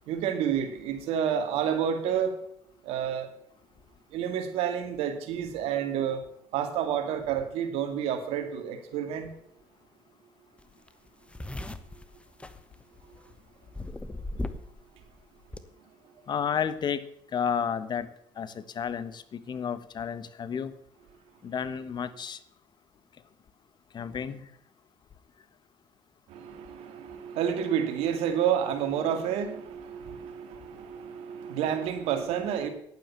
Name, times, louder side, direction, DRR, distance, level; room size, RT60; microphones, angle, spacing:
voice 1, 0.1-2.3 2.8-3.3 4.1-6.2 6.5-9.3 26.3-32.7, right 8 dB, 80° right, 2.3 m, -29 dB
sound 1, 10.6-10.7 10.9-13.3 13.7-14.8 15.1-15.6, left 2 dB, 10° left, 1.1 m, -37 dB
voice 2, 16.3-17.0 17.3-18.1 18.4-20.7 21.4-22.4 23.9-24.4, left 7 dB, 45° left, 1.2 m, -31 dB
11.0 x 9.4 x 7.0 m
supercardioid pair, 80°, 10 cm